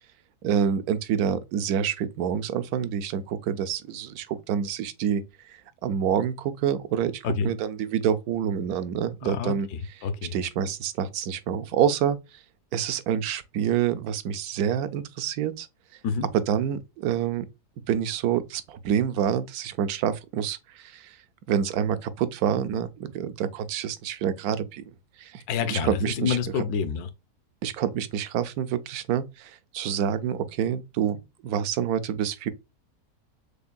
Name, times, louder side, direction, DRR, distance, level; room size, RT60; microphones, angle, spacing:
voice 1, 0.4-5.2 5.5-9.7 10.3-12.2 12.7-15.7 16.3-17.4 17.9-21.2 21.5-24.9 25.2-25.4 25.7-26.6 27.6-31.2 31.4-32.5, right 8 dB, 75° right, 1.1 m, -27 dB
voice 2, 9.2-10.3 16.0-16.3 25.5-27.1, left 6 dB, 80° left, 1.2 m, -28 dB
6.5 x 2.6 x 2.2 m
omnidirectional pair, 1.6 m